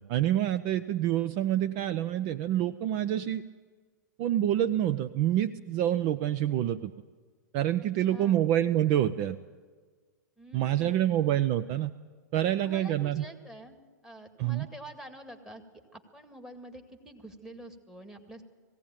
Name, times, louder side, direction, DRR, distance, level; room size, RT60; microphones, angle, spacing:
voice 1, 0.0-3.4 4.2-6.9 7.5-9.4 10.5-11.9 12.3-13.2 14.4-14.7, right 12 dB, 40° right, 14 dB, 0.6 m, -27 dB
voice 2, 7.8-8.5 10.4-11.1 12.5-13.8 14.0-15.6 15.9-18.4, right 1 dB, 5° right, 6 dB, 2.1 m, -47 dB
20.0 x 16.0 x 9.0 m, 1.5 s
hypercardioid pair, 110°, 10 cm